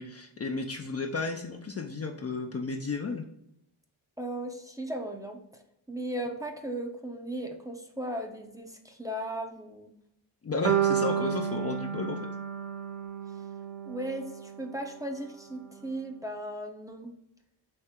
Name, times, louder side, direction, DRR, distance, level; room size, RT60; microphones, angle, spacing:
voice 1, 0.0-3.2 10.4-12.3, left 4 dB, 30° left, 2 dB, 0.5 m, -33 dB
voice 2, 4.2-5.6 5.9-10.0 13.9-17.1, right 1 dB, 5° right, 2 dB, 0.7 m, -37 dB
sound 1, 10.6-14.7, right 9 dB, 65° right, 0.6 m, -31 dB
4.3 x 3.2 x 3.6 m, 0.80 s
cardioid pair, 75°, 48 cm